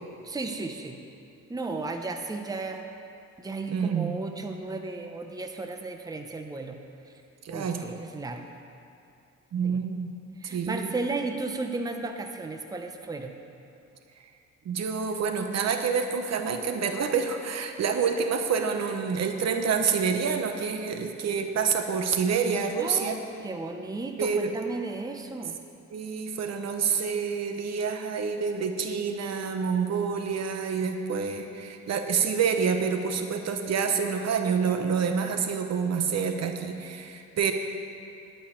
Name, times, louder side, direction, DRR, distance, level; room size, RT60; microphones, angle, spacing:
voice 1, 0.2-1.0 1.5-2.9 3.4-6.8 7.5-8.5 9.6-9.8 10.4-13.4 22.8-25.6, right 3 dB, 10° right, 4 dB, 0.8 m, -34 dB
voice 2, 3.7-4.2 7.4-7.9 9.5-10.1 10.4-10.9 14.6-23.2 24.2-24.5 25.9-37.5, right 6 dB, 60° right, 5 dB, 1.0 m, -27 dB
11.5 x 5.7 x 8.5 m, 2.7 s
cardioid pair, 90°, 30 cm